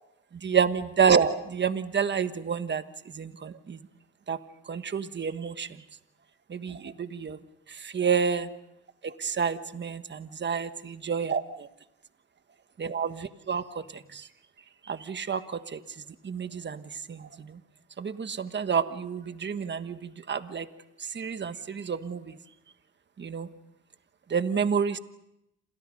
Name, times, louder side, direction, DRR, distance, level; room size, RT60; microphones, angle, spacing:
voice 1, 0.3-3.8 4.3-5.8 6.5-7.4 7.7-8.5 9.0-11.7 12.8-14.3 14.8-17.6 18.0-20.7 21.0-22.4 23.2-23.5 24.3-25.0, right 6 dB, 35° right, 11 dB, 1.4 m, -29 dB
28.0 x 28.0 x 5.3 m, 0.85 s
cardioid pair, 90°, 30 cm